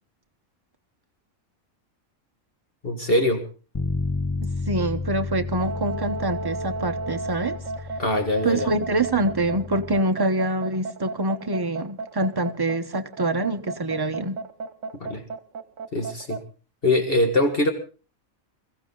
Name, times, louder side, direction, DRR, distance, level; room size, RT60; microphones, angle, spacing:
voice 1, 2.8-3.4 8.0-8.7 15.0-15.2 15.9-16.4 16.8-17.7, left 1 dB, 40° left, 1.8 m, -22 dB
Bass guitar, 3.7-10.0, left 3 dB, 20° left, 0.5 m, -32 dB
voice 2, 4.4-7.6 8.4-14.4, right 2 dB, 20° right, 0.9 m, -25 dB
sound 1, 5.5-16.4, right 4 dB, 60° right, 1.4 m, -33 dB
22.5 x 15.0 x 3.9 m
omnidirectional pair, 1.5 m